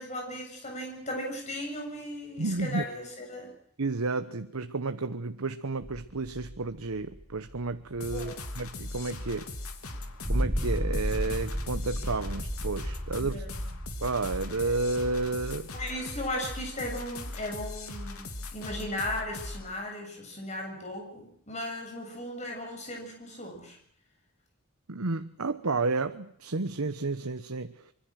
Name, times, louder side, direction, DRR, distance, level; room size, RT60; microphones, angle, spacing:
voice 1, 0.0-3.5 8.1-8.4 13.2-13.7 15.7-23.8, left 1 dB, 30° left, 2 dB, 7.7 m, -37 dB
voice 2, 2.4-2.8 3.8-9.5 10.3-13.4 14.0-15.7 24.9-27.7, right 3 dB, 80° right, 9 dB, 1.0 m, -31 dB
sound 1, 5.8-9.1 9.9-15.3, equal, 5° right, 1.2 m, -34 dB
sound 2, 8.0-19.7, left 2 dB, 75° left, 2.9 m, -40 dB
25.5 x 23.5 x 6.4 m, 0.67 s
head